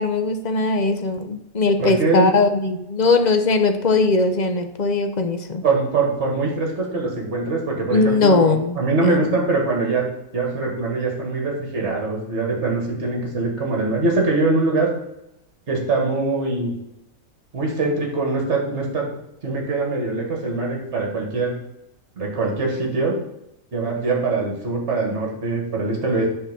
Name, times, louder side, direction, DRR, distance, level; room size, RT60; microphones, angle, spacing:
voice 1, 0.0-5.6 7.9-9.2, left 3 dB, 40° left, 7 dB, 0.6 m, -20 dB
voice 2, 1.5-2.3 5.6-10.1 10.3-14.9 15.7-16.7 17.5-19.1 19.4-21.6 22.2-23.2 23.7-26.3, right 3 dB, 50° right, 0 dB, 2.2 m, -23 dB
10.0 x 3.7 x 6.8 m, 0.85 s
omnidirectional pair, 1.6 m